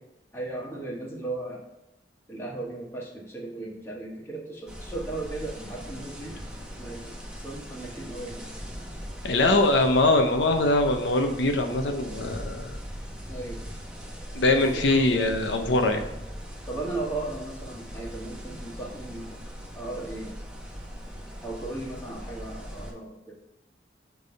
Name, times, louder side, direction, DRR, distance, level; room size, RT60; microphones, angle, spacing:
voice 1, 0.3-1.6 2.3-6.3 6.8-8.4 13.3-13.6 14.5-15.1 16.7-19.4 19.7-20.3 21.4-23.4, right 2 dB, 15° left, -3 dB, 1.5 m, -36 dB
sound 1, 4.7-22.9, equal, 5° right, 1.2 m, -40 dB
voice 2, 9.2-12.8 14.3-16.1, left 2 dB, 90° left, 5 dB, 0.7 m, -22 dB
6.3 x 3.5 x 5.5 m, 0.86 s
head